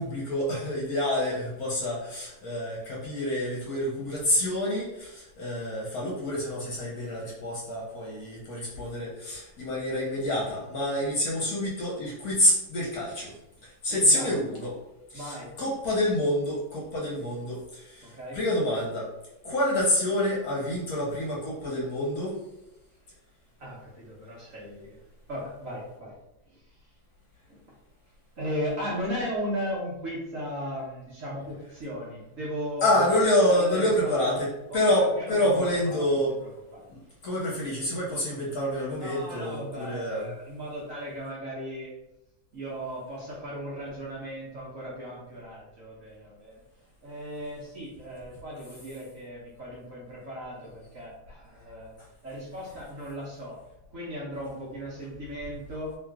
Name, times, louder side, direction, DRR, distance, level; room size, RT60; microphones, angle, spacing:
voice 1, 0.0-13.3 13.6-14.8 15.1-19.1 19.4-22.4 32.8-34.5 34.7-36.3 36.9-40.3, left 1 dB, 60° left, -4 dB, 1.2 m, -27 dB
voice 2, 13.9-14.4 15.1-15.5 18.0-18.4 23.6-25.0 25.3-26.2 26.5-26.7 27.5-27.8 28.4-33.0 33.5-34.4 34.7-36.8 38.9-41.9 42.5-46.6 47.0-51.9 52.2-53.6 53.9-56.0, equal, 50° right, -6 dB, 1.1 m, -37 dB
3.1 x 3.0 x 3.5 m, 0.90 s
omnidirectional pair, 2.1 m